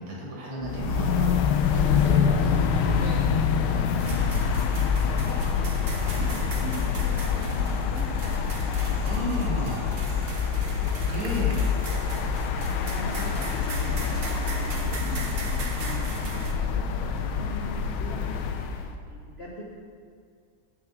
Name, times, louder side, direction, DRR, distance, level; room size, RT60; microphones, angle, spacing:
voice 1, 0.0-1.4 1.7-3.3 3.6-4.5 8.7-10.0 10.8-11.6, right 1 dB, 80° right, -3 dB, 2.8 m, -35 dB
sound 1, 0.6-18.9, left 6 dB, 80° left, 1.5 m, -26 dB
sound 2, 4.0-16.5, right 3 dB, 50° right, 0.7 m, -38 dB
voice 2, 5.2-8.4 8.8-9.3 11.4-11.5 12.8-19.6, equal, 50° left, -4 dB, 0.7 m, -41 dB
Human voice, 7.5-15.5, left 1 dB, 5° right, 1.7 m, -46 dB
7.8 x 6.6 x 6.0 m, 2.3 s
omnidirectional pair, 2.3 m